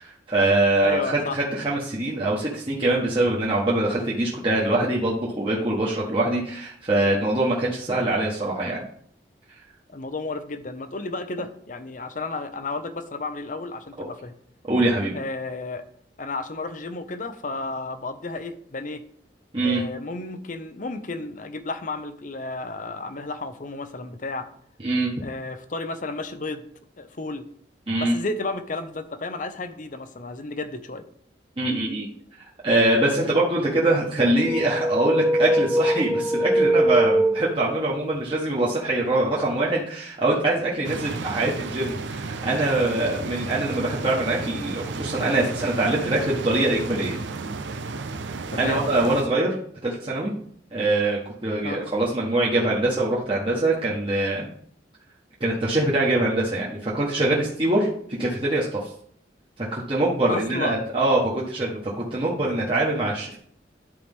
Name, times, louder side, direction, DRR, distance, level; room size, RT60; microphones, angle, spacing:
voice 1, 0.0-8.8 14.0-14.1 14.7-15.2 19.5-19.8 24.8-25.1 27.9-28.2 31.6-32.1 32.6-47.2 48.6-49.5 49.8-50.3 50.7-54.5 55.4-57.9 58.2-58.9 59.6-63.4, right 2 dB, 30° right, -6 dB, 1.4 m, -23 dB
voice 2, 0.8-1.4 9.9-14.3 15.1-15.8 16.2-19.0 19.6-24.5 25.2-26.6 27.0-27.4 28.0-31.0 48.5-48.8 51.6-51.8 60.3-60.9, left 3 dB, 45° left, 10 dB, 0.7 m, -32 dB
sound 1, 34.4-38.0, right 1 dB, 5° right, 0.3 m, -22 dB
sound 2, 40.8-49.2, right 3 dB, 85° right, 0.6 m, -33 dB
11.5 x 4.7 x 3.6 m, 0.62 s
head